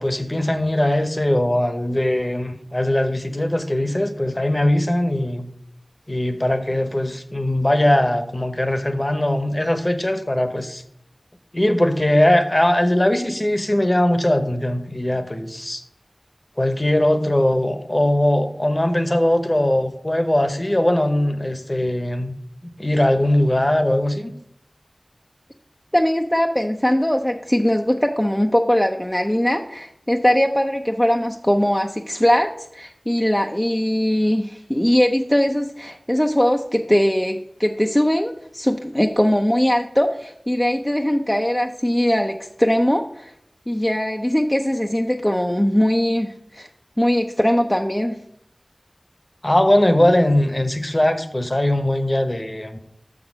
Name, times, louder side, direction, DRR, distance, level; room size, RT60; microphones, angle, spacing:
voice 1, 0.0-5.5 6.1-10.8 11.5-15.8 16.6-22.4 22.6-24.3 49.4-52.8, left 1 dB, 35° left, 8 dB, 0.9 m, -20 dB
voice 2, 25.9-43.3 43.7-46.7 47.0-48.2, equal, 15° left, 3 dB, 0.5 m, -20 dB
6.7 x 6.1 x 5.2 m, 0.73 s
wide cardioid pair, 45°, 0 cm